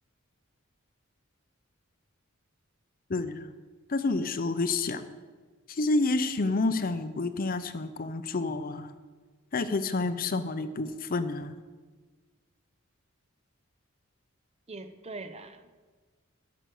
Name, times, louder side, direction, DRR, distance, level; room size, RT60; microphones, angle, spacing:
voice 1, 3.1-3.5 3.9-5.0 5.7-8.9 9.5-11.6, left 3 dB, 40° left, 11 dB, 0.6 m, -29 dB
voice 2, 14.7-15.8, right 2 dB, 30° right, 9 dB, 0.7 m, -43 dB
11.0 x 6.7 x 7.6 m, 1.4 s
head